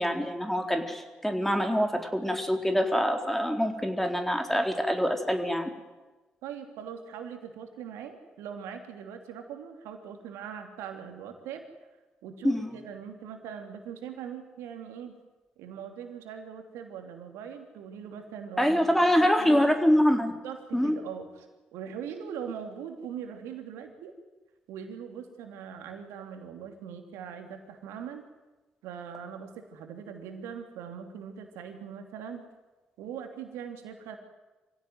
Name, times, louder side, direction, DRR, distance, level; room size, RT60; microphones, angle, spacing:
voice 1, 0.0-5.7 12.4-12.8 18.6-20.3 20.7-21.0, equal, 5° left, 5 dB, 4.2 m, -25 dB
voice 2, 6.4-11.6 12.2-15.2 15.6-18.9 19.2-19.7 20.4-21.5 21.7-24.1 24.7-28.3 28.8-32.4 33.0-34.2, right 8 dB, 80° right, 5 dB, 3.1 m, -41 dB
25.5 x 16.5 x 9.6 m, 1.2 s
hypercardioid pair, 45°, 5 cm